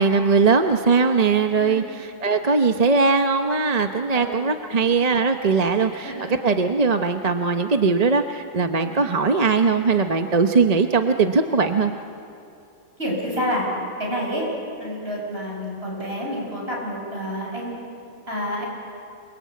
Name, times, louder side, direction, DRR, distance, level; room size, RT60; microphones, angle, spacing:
voice 1, 0.0-6.1 6.4-11.9, right 4 dB, 35° right, 6 dB, 0.9 m, -20 dB
voice 2, 1.6-1.9 4.1-4.3 4.7-4.8 5.8-6.4 8.8-8.9 13.0-13.7 14.0-14.5 14.8-17.8 18.3-18.7, equal, 55° right, -3 dB, 8.0 m, -29 dB
28.0 x 22.5 x 8.5 m, 2.6 s
omnidirectional pair, 1.3 m